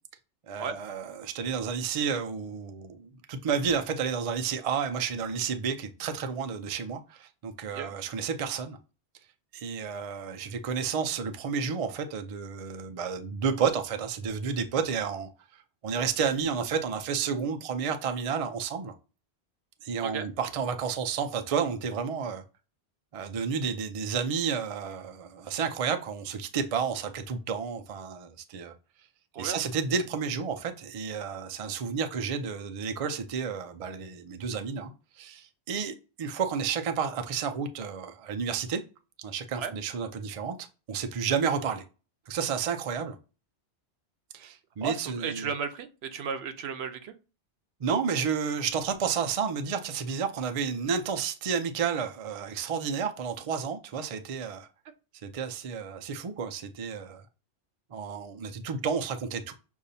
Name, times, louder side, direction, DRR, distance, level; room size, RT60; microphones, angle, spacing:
voice 1, 0.5-8.8 9.5-15.3 15.8-18.9 19.8-22.4 23.1-28.7 29.4-38.8 39.2-41.8 42.3-43.2 44.3-45.5 47.8-54.7 55.2-57.2 57.9-59.5, right 6 dB, 50° right, 0.4 m, -31 dB
voice 2, 44.8-47.1, right 6 dB, 75° right, 0.8 m, -34 dB
6.6 x 2.7 x 2.7 m
omnidirectional pair, 1.1 m